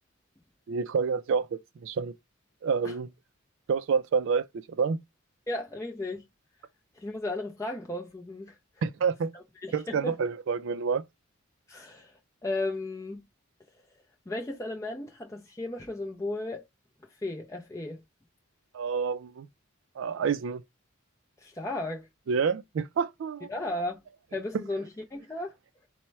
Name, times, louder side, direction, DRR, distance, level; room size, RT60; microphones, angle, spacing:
voice 1, 0.7-2.1 2.6-3.1 3.7-5.0 8.8-9.3 9.7-11.0 18.7-19.5 20.0-20.6 22.3-23.5 24.5-24.6, right 5 dB, 60° right, 0.3 m, -28 dB
voice 2, 5.5-6.2 7.0-8.6 9.3-10.1 11.7-13.2 14.3-16.7 17.2-18.0 21.4-22.1 23.5-24.0 24.3-25.5, left 2 dB, 15° left, 0.4 m, -35 dB
4.2 x 2.1 x 4.5 m
head